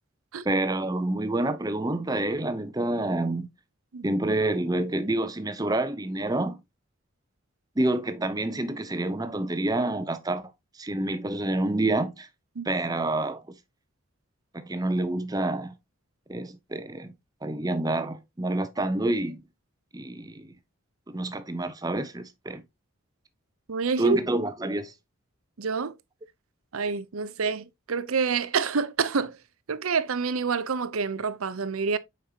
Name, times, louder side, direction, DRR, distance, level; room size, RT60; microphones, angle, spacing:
voice 1, 0.4-3.5 4.0-6.6 7.8-10.5 10.8-12.3 12.6-13.4 14.5-15.7 16.3-17.1 17.4-19.4 19.9-20.5 21.1-22.6 24.0-24.9, right 2 dB, 20° right, 0.7 m, -28 dB
voice 2, 23.7-24.2 25.6-25.9 26.7-29.4 29.7-32.0, right 5 dB, 90° right, 0.7 m, -27 dB
7.3 x 5.4 x 2.8 m
head